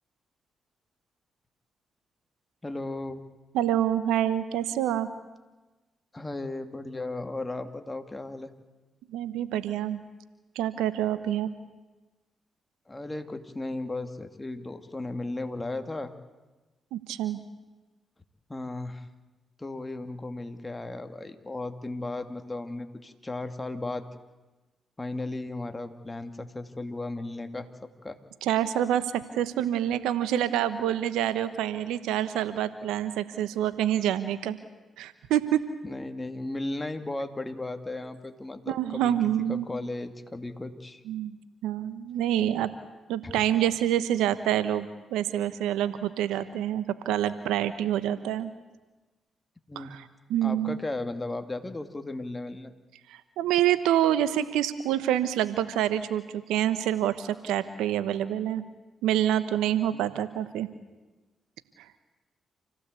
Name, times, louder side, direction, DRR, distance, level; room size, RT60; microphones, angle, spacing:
voice 1, 2.6-3.2 6.1-8.5 12.9-16.1 18.5-19.1 19.6-24.1 25.0-28.2 35.8-39.1 39.5-41.0 43.2-43.3 49.7-49.9 50.4-52.7 59.9-60.0, left 2 dB, 25° left, 7 dB, 2.7 m, -35 dB
voice 2, 3.5-5.1 9.1-10.0 10.5-11.5 16.9-17.4 28.4-34.6 35.0-35.6 38.7-39.7 41.1-41.4 41.6-42.7 43.1-48.5 49.7-50.8 53.1-58.6 59.0-60.7 61.8-61.9, right 11 dB, 80° right, 13 dB, 1.0 m, -27 dB
27.5 x 16.5 x 8.3 m, 1.2 s
hypercardioid pair, 45°, 0 cm